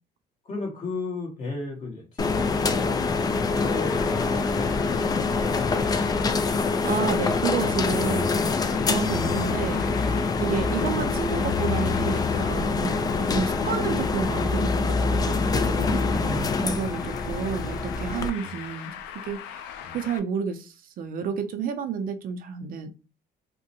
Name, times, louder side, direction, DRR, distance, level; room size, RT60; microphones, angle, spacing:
voice 1, 0.4-5.9 18.4-18.6 19.8-20.0, left 3 dB, 50° left, 1.6 m, -36 dB
sound 1, 2.2-18.3, left 4 dB, 25° left, 0.3 m, -25 dB
Traffic noise roadway noise, 2.3-20.2, left 7 dB, 90° left, 0.4 m, -40 dB
voice 2, 6.5-9.9 10.4-22.9, right 6 dB, 55° right, 0.5 m, -31 dB
3.6 x 2.2 x 2.7 m
cardioid pair, 110°, 17 cm